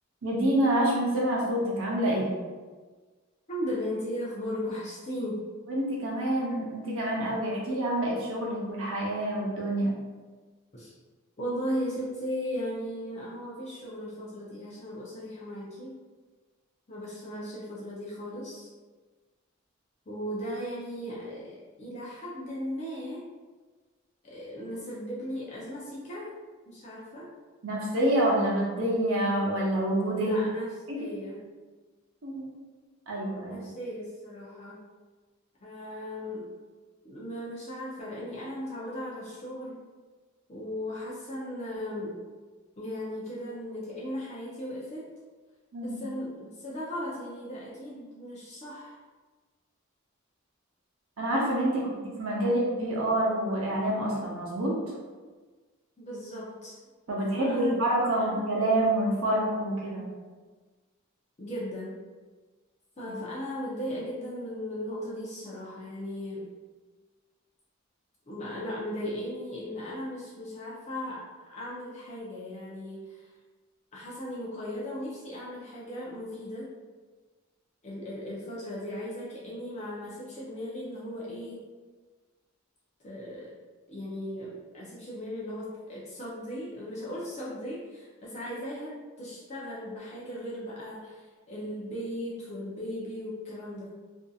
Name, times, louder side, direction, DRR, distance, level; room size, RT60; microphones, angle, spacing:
voice 1, 0.2-2.4 5.7-9.9 27.6-30.4 30.9-31.0 32.2-32.5 33.1-33.6 45.7-46.0 51.2-54.8 57.1-60.1, right 1 dB, 80° right, -3 dB, 0.7 m, -27 dB
voice 2, 3.5-5.4 10.7-10.9 11.4-16.0 16.9-18.7 20.1-23.2 24.2-26.3 26.7-27.3 30.2-30.7 31.0-31.4 33.5-34.8 35.6-36.5 37.0-39.8 40.5-42.2 42.8-45.1 45.8-49.0 51.7-51.9 56.0-56.8 57.3-57.8 58.2-58.4 61.4-62.0 63.0-66.4 68.3-73.3 73.9-76.7 77.8-81.6 83.0-83.6 83.9-93.9, equal, 35° left, -7 dB, 0.5 m, -37 dB
2.6 x 2.6 x 2.3 m, 1.4 s
head